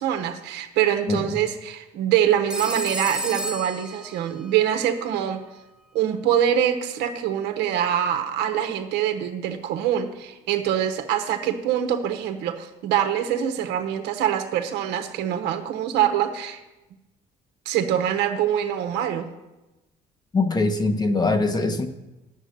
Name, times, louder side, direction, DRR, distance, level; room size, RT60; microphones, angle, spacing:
voice 1, 0.0-5.4 5.9-16.6 17.6-19.3, right 10 dB, 85° right, 6 dB, 1.0 m, -24 dB
voice 2, 1.1-1.4 20.3-21.9, left 3 dB, 25° left, 8 dB, 1.0 m, -22 dB
Telephone, 2.5-4.6, right 1 dB, 5° right, 0.7 m, -32 dB
10.5 x 7.3 x 6.6 m, 1.0 s
cardioid pair, 110°, 17 cm